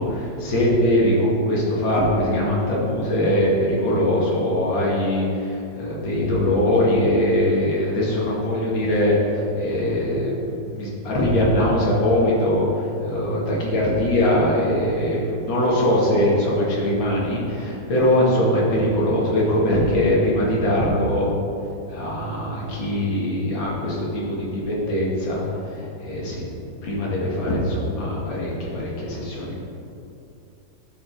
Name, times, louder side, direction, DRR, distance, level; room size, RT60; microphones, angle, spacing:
voice 1, 0.0-21.3 21.9-26.5 26.8-29.6, left 1 dB, 85° left, -5 dB, 2.6 m, -21 dB
11.0 x 5.0 x 4.6 m, 2.7 s
omnidirectional pair, 2.1 m